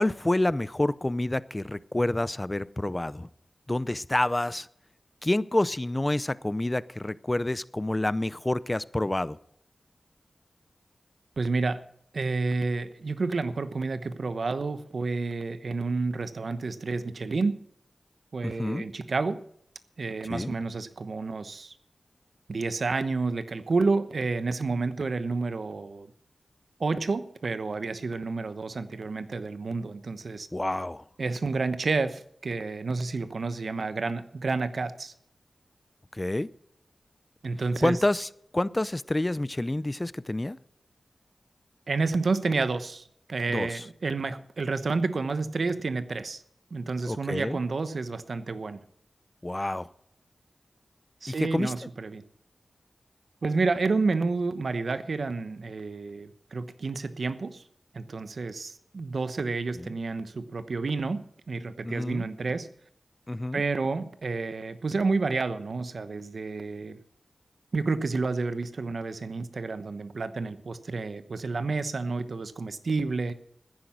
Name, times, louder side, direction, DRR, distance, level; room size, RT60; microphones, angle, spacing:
voice 1, 0.0-3.3 3.7-4.7 5.2-9.4 18.4-18.9 20.3-20.5 30.5-31.0 36.1-36.5 37.8-40.6 43.5-43.8 47.0-47.6 49.4-49.9 51.3-51.7 59.7-59.9 61.8-62.3 63.3-63.6, left 1 dB, 25° left, 18 dB, 0.6 m, -28 dB
voice 2, 11.4-11.8 12.1-17.6 18.3-19.4 20.0-21.7 22.5-26.1 26.8-30.5 31.2-35.1 37.4-38.0 41.9-46.4 46.7-48.8 51.2-52.2 53.4-57.6 57.9-62.7 63.5-67.0 67.7-73.3, right 3 dB, 70° right, 12 dB, 1.0 m, -30 dB
14.5 x 10.5 x 6.1 m, 0.70 s
cardioid pair, 55°, 0 cm